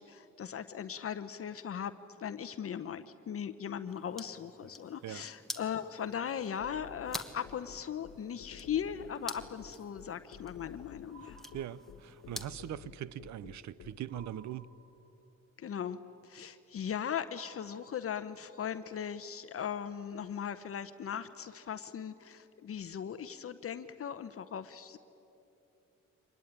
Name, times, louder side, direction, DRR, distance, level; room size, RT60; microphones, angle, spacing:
voice 1, 0.0-1.9 2.2-11.4 15.6-16.0 16.2-25.0, left 8 dB, 50° left, 0.9 m, -38 dB
sound 1, 3.9-12.7, left 1 dB, ahead, 1.6 m, -48 dB
sound 2, 6.6-14.3, left 9 dB, 75° left, 1.4 m, -51 dB
sound 3, 11.1-12.3 14.1-15.3 17.3-18.6, right 5 dB, 50° right, 5.5 m, -58 dB
voice 2, 11.5-14.7, right 11 dB, 65° right, 0.8 m, -41 dB
24.5 x 20.0 x 9.9 m
cardioid pair, 90°, 30 cm